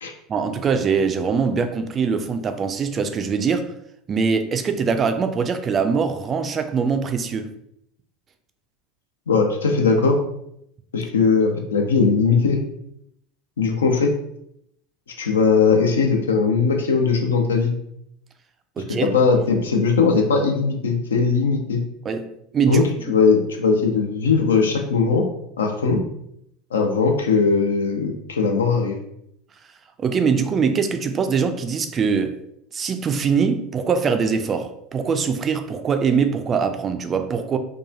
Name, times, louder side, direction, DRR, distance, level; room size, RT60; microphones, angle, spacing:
voice 1, 0.3-3.7 4.1-7.5 18.8-19.1 22.0-22.8 25.9-26.0 30.0-32.4 32.7-37.6, right 5 dB, 30° right, 7 dB, 0.3 m, -22 dB
voice 2, 9.3-10.2 10.9-12.6 13.6-14.1 15.2-17.7 19.0-21.8 22.7-22.8 23.1-25.2 25.6-26.0 26.7-29.0, left 5 dB, 75° left, 3 dB, 0.4 m, -19 dB
2.9 x 2.2 x 2.5 m, 0.76 s
figure-of-eight pair, 75°, 0 cm